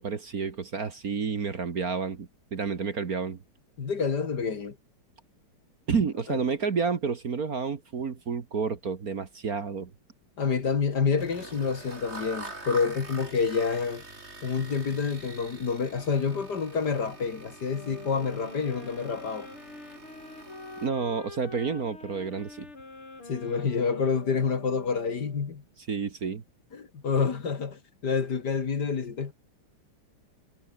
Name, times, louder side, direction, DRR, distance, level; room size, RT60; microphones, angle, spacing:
voice 1, 0.0-3.4 5.9-9.9 20.8-22.7 25.9-26.4, right 5 dB, 45° right, 1.9 m, -30 dB
voice 2, 3.8-4.8 6.3-6.4 10.4-14.0 14.4-19.5 23.3-25.6 26.7-29.3, left 5 dB, 50° left, 2.5 m, -28 dB
sound 1, 11.2-20.9, right 2 dB, 30° right, 4.6 m, -45 dB
sound 2, 17.7-25.6, left 3 dB, 75° left, 7.4 m, -45 dB
omnidirectional pair, 2.4 m